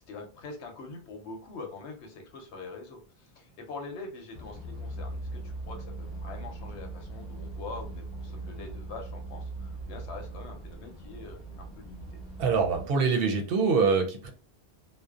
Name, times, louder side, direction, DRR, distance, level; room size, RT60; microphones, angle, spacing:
voice 1, 0.1-5.4 5.7-12.2, left 3 dB, 90° left, 3 dB, 1.0 m, -44 dB
sound 1, 4.3-12.9, right 2 dB, 40° left, 0.8 m, -40 dB
voice 2, 12.4-14.3, right 5 dB, 65° right, 4 dB, 0.7 m, -24 dB
2.6 x 2.1 x 2.4 m, 0.34 s
omnidirectional pair, 1.1 m